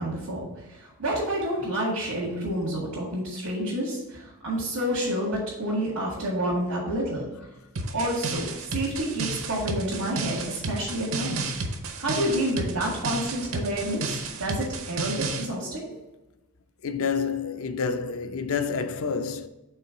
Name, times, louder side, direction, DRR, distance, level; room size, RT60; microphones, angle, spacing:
voice 1, 0.0-7.3 7.9-11.4 12.0-15.9, right 1 dB, 90° right, 2.0 m, -29 dB
sound 1, 7.8-15.5, right 3 dB, 70° right, 0.8 m, -32 dB
voice 2, 16.8-19.5, left 5 dB, 70° left, 0.5 m, -28 dB
5.6 x 3.8 x 4.8 m
head